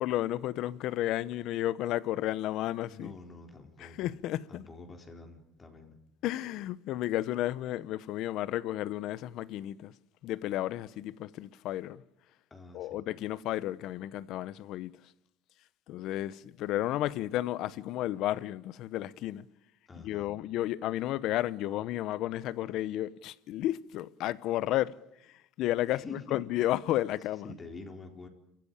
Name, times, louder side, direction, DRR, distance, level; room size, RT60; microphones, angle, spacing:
voice 1, 0.0-3.1 3.8-4.6 6.2-9.9 10.2-12.0 12.7-14.9 15.9-19.4 20.0-24.9 25.6-27.5, left 14 dB, 60° left, 0.9 m, -32 dB
voice 2, 2.9-4.1 4.5-6.0 12.5-13.1 19.9-20.3 25.9-26.4 27.4-28.3, left 3 dB, 20° left, 4.2 m, -47 dB
28.0 x 15.0 x 8.9 m
cardioid pair, 120°, 0 cm